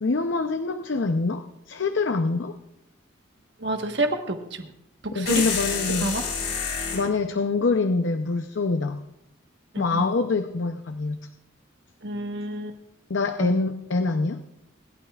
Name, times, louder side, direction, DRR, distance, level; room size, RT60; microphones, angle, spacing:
voice 1, 0.0-2.6 5.1-6.3 6.9-9.0 9.8-11.2 13.1-14.4, left 3 dB, 70° left, 7 dB, 0.6 m, -25 dB
voice 2, 3.6-4.7 5.0-5.4 6.0-6.2 9.7-10.1 12.0-12.8 13.4-13.5, right 1 dB, 60° right, 5 dB, 1.3 m, -29 dB
sound 1, 5.3-7.1, left 6 dB, 55° left, 3.2 m, -28 dB
26.0 x 12.0 x 2.4 m, 0.84 s
head